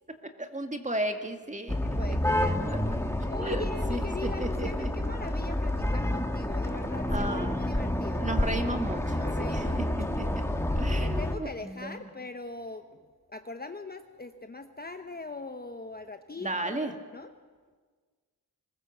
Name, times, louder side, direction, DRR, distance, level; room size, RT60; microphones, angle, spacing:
voice 1, 0.2-2.2 3.4-4.9 7.1-7.7 8.2-9.6 10.2-10.3 10.8-12.0 16.4-16.9, right 1 dB, 20° right, 6 dB, 2.0 m, -34 dB
sound 1, 1.7-11.4, left 1 dB, 5° left, 1.5 m, -29 dB
voice 2, 1.8-2.6 3.3-8.3 9.1-9.9 11.0-17.3, left 3 dB, 25° left, 7 dB, 0.9 m, -41 dB
22.5 x 20.0 x 7.3 m, 1.5 s
wide cardioid pair, 105°, 38 cm